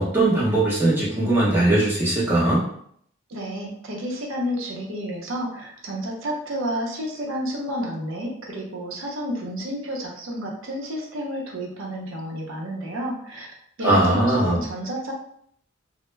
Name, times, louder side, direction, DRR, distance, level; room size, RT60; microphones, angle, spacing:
voice 1, 0.0-2.6 13.8-14.6, right 1 dB, 10° right, -7 dB, 0.7 m, -20 dB
voice 2, 3.3-13.5 13.8-15.1, equal, 75° right, -1 dB, 0.7 m, -30 dB
2.2 x 2.0 x 3.1 m, 0.66 s
head